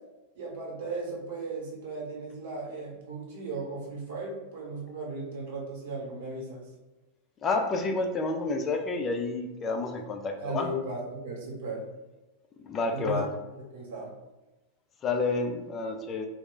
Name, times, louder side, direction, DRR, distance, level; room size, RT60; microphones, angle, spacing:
voice 1, 0.3-6.7 10.4-11.8 12.9-13.2 13.7-14.1, right 2 dB, 55° right, -2 dB, 1.0 m, -36 dB
voice 2, 7.4-10.7 12.6-13.3 15.0-16.3, left 3 dB, 25° left, 4 dB, 0.3 m, -29 dB
2.2 x 2.1 x 3.8 m, 1.1 s
figure-of-eight pair, 90°, 0 cm